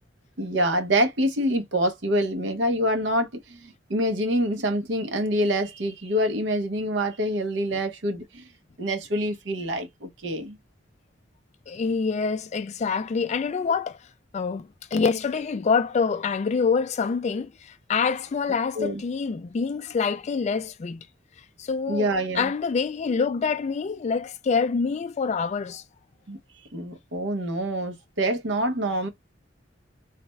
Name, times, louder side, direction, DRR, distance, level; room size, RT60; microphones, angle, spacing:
voice 1, 0.4-8.4 8.8-10.6 18.8-19.0 21.9-22.5 26.3-26.4 26.7-29.1, equal, 70° right, 0.7 m, -26 dB
voice 2, 11.7-14.0 14.3-21.1 21.6-25.8, left 5 dB, 35° left, 0.3 m, -26 dB
3.3 x 2.1 x 2.9 m
head